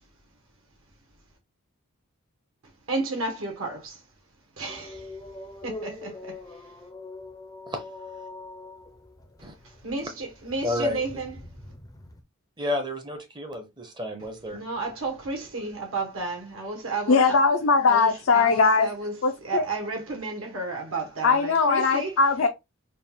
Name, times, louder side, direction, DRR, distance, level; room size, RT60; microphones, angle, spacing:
voice 1, 2.9-4.0 4.6-5.1 5.6-6.4 9.6-11.5 14.4-17.4 17.9-22.4, right 3 dB, 70° right, 1.4 m, -32 dB
sound 1, 4.7-12.2, left 2 dB, 15° left, 0.5 m, -43 dB
voice 2, 10.6-11.2 12.6-14.6, left 2 dB, 20° right, 0.7 m, -31 dB
voice 3, 17.1-18.9 19.2-19.6 21.2-22.5, left 4 dB, 65° left, 0.5 m, -20 dB
4.1 x 2.4 x 3.6 m
head